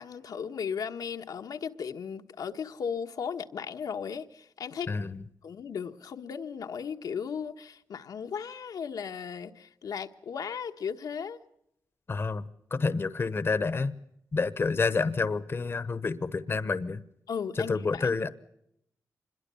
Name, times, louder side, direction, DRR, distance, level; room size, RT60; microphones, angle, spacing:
voice 1, 0.0-4.9 5.4-11.4 17.3-18.1, left 7 dB, 80° left, 1.3 m, -36 dB
voice 2, 4.9-5.2 12.1-12.4 12.7-13.9 14.3-17.0 17.6-18.3, left 4 dB, 35° left, 1.0 m, -28 dB
26.0 x 21.5 x 7.0 m
wide cardioid pair, 120°, 6 cm